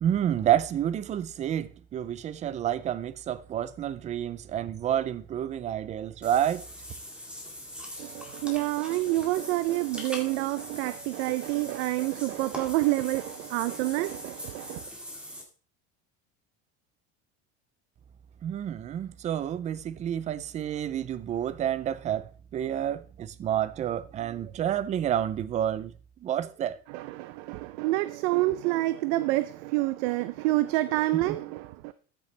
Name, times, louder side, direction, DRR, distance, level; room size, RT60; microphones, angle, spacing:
voice 1, 0.0-6.6 18.4-25.9 26.2-26.8 31.1-31.4, right 10 dB, 20° right, 0.4 m, -29 dB
Water / Bathtub (filling or washing), 6.2-15.4, left 1 dB, 5° right, 1.8 m, -42 dB
voice 2, 8.0-14.8 26.9-31.9, right 18 dB, 85° right, 0.7 m, -28 dB
13.5 x 6.8 x 3.3 m
cardioid pair, 160°, 33 cm